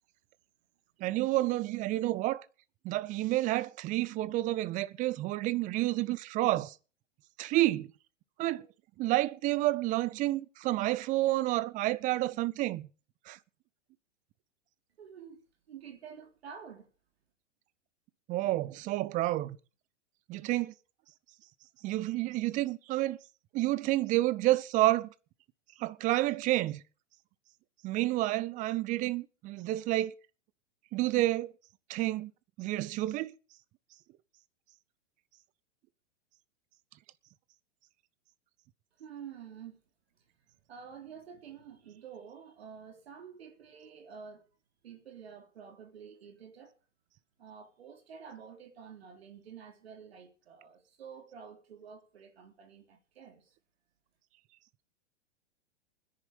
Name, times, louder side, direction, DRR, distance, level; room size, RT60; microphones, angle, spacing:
voice 1, 1.0-2.4 2.8-6.7 7.4-7.9 8.4-8.7 9.0-12.9 13.3-13.4 18.3-19.6 20.3-20.7 21.8-23.2 23.5-25.1 25.8-26.8 27.8-30.1 30.9-31.5 31.9-32.3 32.6-33.3, right 17 dB, 20° right, 0.7 m, -29 dB
voice 2, 15.0-15.4 15.7-16.9 39.0-39.8 40.7-44.4 44.8-46.8 47.4-53.4, right 7 dB, 60° right, 3.5 m, -49 dB
20.5 x 10.5 x 5.3 m
figure-of-eight pair, 100°, 36 cm